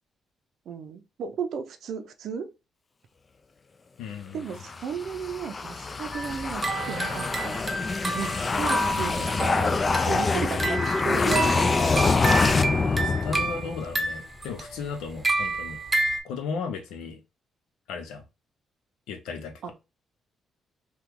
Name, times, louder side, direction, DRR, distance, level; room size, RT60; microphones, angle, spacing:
voice 1, 0.7-2.5 4.3-7.6 8.1-9.8 10.1-12.1 19.6-19.7, right 6 dB, 70° right, 0.5 m, -34 dB
voice 2, 4.0-4.4 12.8-15.8 16.2-17.2 17.9-18.2 19.1-19.7, left 5 dB, 90° left, 0.7 m, -35 dB
sound 1, 4.5-13.9, left 4 dB, 30° left, 0.3 m, -25 dB
sound 2, 6.1-16.2, right 2 dB, 20° right, 0.7 m, -30 dB
2.9 x 2.3 x 3.5 m
cardioid pair, 90°, 0 cm